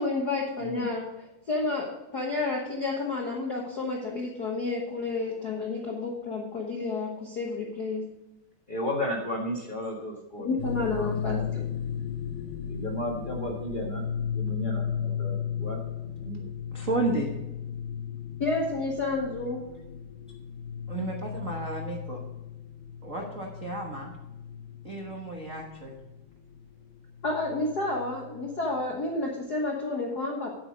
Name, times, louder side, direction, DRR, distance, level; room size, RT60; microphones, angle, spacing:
voice 1, 0.0-8.0 9.5-9.6 10.4-11.6 18.4-19.6 27.2-30.5, left 3 dB, 60° left, -1 dB, 1.0 m, -30 dB
voice 2, 8.7-10.5 10.9-11.4 12.7-14.0 14.4-15.8 16.0-16.4, equal, 30° left, -2 dB, 0.9 m, -34 dB
sound 1, 10.6-28.9, left 8 dB, 90° left, 2.6 m, -36 dB
voice 3, 16.7-17.3 20.9-22.2 23.0-24.1 24.8-25.9, right 2 dB, 80° right, 0 dB, 0.7 m, -32 dB
9.0 x 8.8 x 5.1 m, 0.96 s
omnidirectional pair, 3.8 m